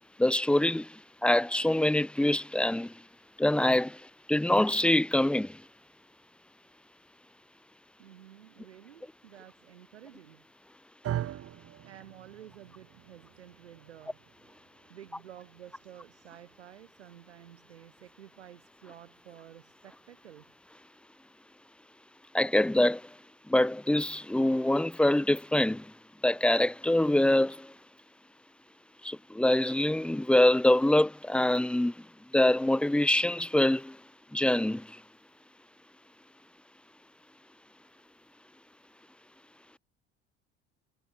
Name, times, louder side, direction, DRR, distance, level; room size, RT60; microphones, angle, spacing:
voice 1, 0.2-0.9 1.2-2.9 3.4-4.0 4.3-5.6 22.3-23.0 23.5-25.9 26.2-27.7 29.0-31.9 32.3-34.0 34.3-34.9, left 1 dB, 5° left, 0.8 m, -24 dB
voice 2, 8.0-10.5 11.8-14.2 14.9-20.5, right 11 dB, 75° right, 3.9 m, -52 dB
sound 1, 11.0-19.3, right 12 dB, 40° right, 2.5 m, -43 dB
figure-of-eight pair, 60°, 34 cm